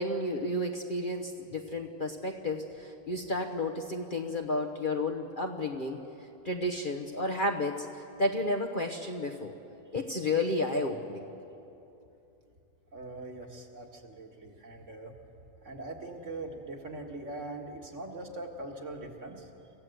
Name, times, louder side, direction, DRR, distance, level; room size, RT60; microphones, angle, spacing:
voice 1, 0.0-6.0 6.4-9.5 9.9-11.3, left 1 dB, 35° left, 2 dB, 1.1 m, -32 dB
voice 2, 12.9-15.1 15.6-19.5, right 2 dB, 50° right, 1 dB, 2.1 m, -42 dB
26.0 x 15.5 x 7.9 m, 2.8 s
omnidirectional pair, 1.7 m